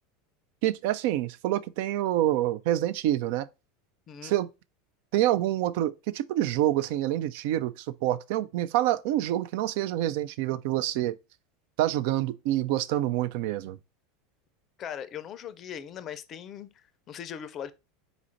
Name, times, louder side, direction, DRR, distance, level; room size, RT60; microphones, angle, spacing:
voice 1, 0.6-3.5 4.2-4.5 5.1-11.2 11.8-13.8, right 13 dB, 60° right, 0.3 m, -27 dB
voice 2, 14.8-17.7, left 9 dB, 40° left, 0.5 m, -40 dB
4.1 x 2.5 x 4.3 m
hypercardioid pair, 85°, 0 cm